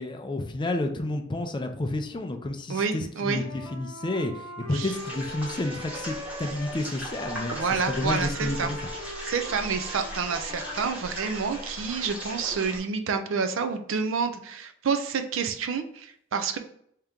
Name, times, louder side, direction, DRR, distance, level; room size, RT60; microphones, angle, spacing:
voice 1, 0.0-8.9, left 2 dB, 25° left, 6 dB, 0.4 m, -31 dB
voice 2, 2.7-3.4 4.7-4.9 7.5-8.7 9.2-16.6, right 5 dB, 75° right, 7 dB, 0.5 m, -28 dB
Wind instrument woodwind instrument, 3.1-6.8 7.1-10.9, equal, 30° right, 1.2 m, -40 dB
sound 1, 4.9-12.8, equal, 5° right, 1.2 m, -38 dB
3.6 x 2.8 x 3.5 m, 0.66 s
head